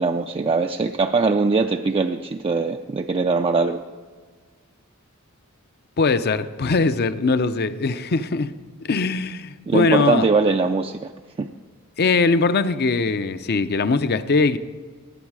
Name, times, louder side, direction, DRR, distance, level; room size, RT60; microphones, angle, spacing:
voice 1, 0.0-3.8 9.7-11.1 11.4-11.5, right 4 dB, 25° right, 0.4 m, -21 dB
voice 2, 6.0-8.5 8.8-10.2 12.0-14.6, left 4 dB, 50° left, 0.6 m, -21 dB
19.0 x 8.0 x 4.8 m
head